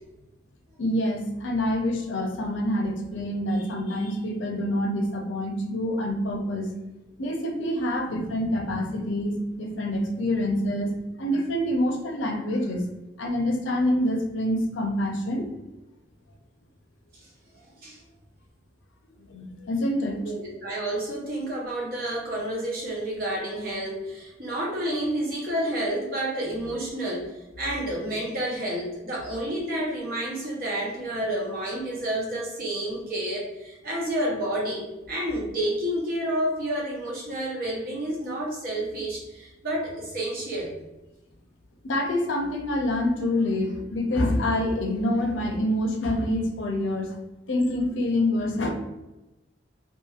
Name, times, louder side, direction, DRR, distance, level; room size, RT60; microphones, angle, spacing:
voice 1, 0.8-6.7 7.2-12.9 13.2-15.5 19.2-20.2 41.8-47.2 47.5-48.7, left 1 dB, 80° left, 3 dB, 0.5 m, -26 dB
voice 2, 20.2-40.7, right 1 dB, 50° right, -3 dB, 0.8 m, -30 dB
2.9 x 2.5 x 2.4 m, 1.0 s
head